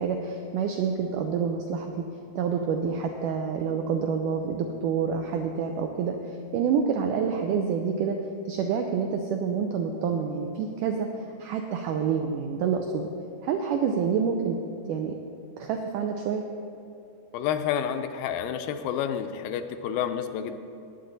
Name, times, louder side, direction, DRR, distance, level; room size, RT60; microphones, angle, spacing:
voice 1, 0.0-2.0 2.4-8.2 8.5-13.1 13.4-14.6 14.9-15.2 15.6-16.4, right 6 dB, 85° right, 4 dB, 1.8 m, -28 dB
voice 2, 17.3-20.6, left 9 dB, 80° left, 8 dB, 2.3 m, -29 dB
18.0 x 8.1 x 4.0 m, 2.5 s
omnidirectional pair, 4.4 m